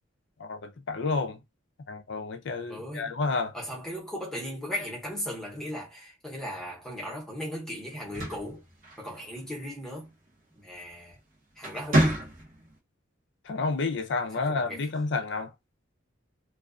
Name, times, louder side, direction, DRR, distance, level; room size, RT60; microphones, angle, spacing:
voice 1, 0.4-1.4 1.9-3.5 13.5-15.5, left 3 dB, 60° left, 0.4 m, -30 dB
voice 2, 2.7-3.1 3.5-8.6 9.0-10.1 10.5-11.2 11.6-12.3 14.3-14.9, equal, 5° left, 0.8 m, -37 dB
sound 1, 7.9-9.5 10.9-11.2 11.6-12.8, right 1 dB, 40° right, 0.8 m, -28 dB
2.3 x 2.3 x 2.4 m
head